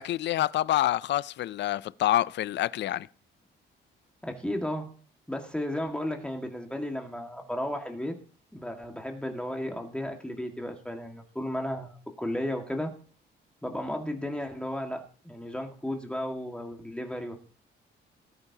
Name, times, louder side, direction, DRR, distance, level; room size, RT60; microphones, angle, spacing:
voice 1, 0.0-3.1, left 13 dB, 65° left, 0.4 m, -27 dB
voice 2, 4.2-4.9 5.3-8.1 8.5-12.9 13.6-17.3, left 1 dB, 5° left, 1.8 m, -34 dB
18.5 x 8.6 x 2.9 m
cardioid pair, 90°, 20 cm